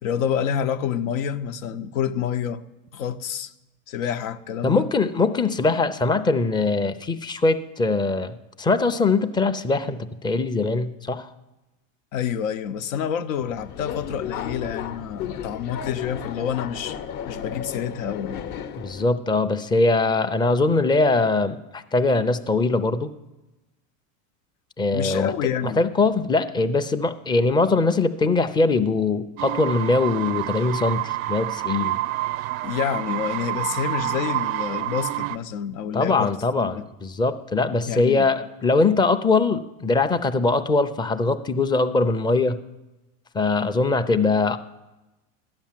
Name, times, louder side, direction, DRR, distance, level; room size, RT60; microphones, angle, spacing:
voice 1, 0.0-2.6 2.9-3.5 3.9-4.9 12.1-17.0 17.3-18.5 24.9-25.8 32.6-36.8 37.9-38.3, left 8 dB, 85° left, 0.9 m, -28 dB
voice 2, 4.6-11.3 18.8-23.1 24.8-25.3 25.6-32.0 35.9-42.6 43.3-44.6, left 3 dB, 10° left, 0.5 m, -22 dB
Subway metro underground, 13.4-19.0, left 9 dB, 50° left, 0.9 m, -34 dB
sound 1, 29.4-35.4, right 16 dB, 90° right, 0.6 m, -28 dB
13.5 x 10.5 x 7.4 m
supercardioid pair, 130°, 39 cm